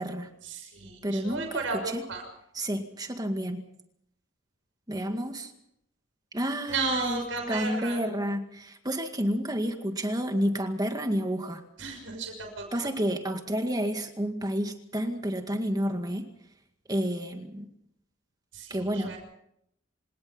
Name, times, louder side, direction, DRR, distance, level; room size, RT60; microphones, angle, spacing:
voice 1, 0.4-2.2 6.7-8.0 11.8-12.9 18.5-19.2, right 3 dB, 90° right, 3 dB, 6.4 m, -34 dB
voice 2, 1.0-1.6 1.9-2.0 2.6-3.6 4.9-5.5 6.3-11.6 12.7-16.3 16.9-17.7 18.7-19.2, equal, 20° right, 5 dB, 2.0 m, -30 dB
27.0 x 18.5 x 5.7 m, 0.77 s
head